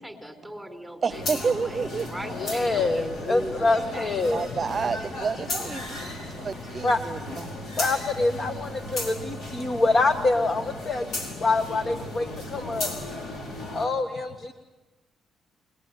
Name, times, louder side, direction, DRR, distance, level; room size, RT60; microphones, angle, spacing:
voice 1, 0.0-4.2, right 1 dB, ahead, 4.6 m, -39 dB
voice 2, 1.0-2.1 4.3-7.5, right 5 dB, 40° right, 0.9 m, -30 dB
sound 1, 1.1-13.9, left 1 dB, 65° left, 5.0 m, -35 dB
voice 3, 2.3-4.5 6.8-7.0 7.8-12.9 13.7-14.5, left 3 dB, 45° left, 1.6 m, -25 dB
29.5 x 21.0 x 9.5 m
cardioid pair, 90°, 0 cm